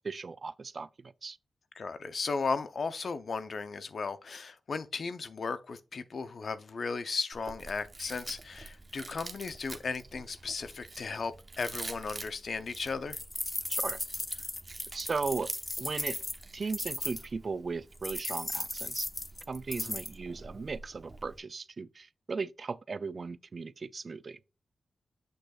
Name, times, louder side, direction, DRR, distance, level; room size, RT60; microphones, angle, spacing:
voice 1, 0.0-1.4 13.7-14.0 14.9-15.5 15.8-16.2 16.5-19.1 19.5-24.4, right 4 dB, 55° right, 0.3 m, -37 dB
voice 2, 1.8-13.2 19.8-20.0, left 4 dB, 65° left, 0.6 m, -36 dB
Chewing mastication, 7.3-21.4, right 2 dB, 40° right, 1.0 m, -47 dB
sound 1, 13.1-17.3 18.0-20.1, left 1 dB, 25° left, 0.6 m, -36 dB
7.9 x 6.4 x 2.3 m
cardioid pair, 60°, 0 cm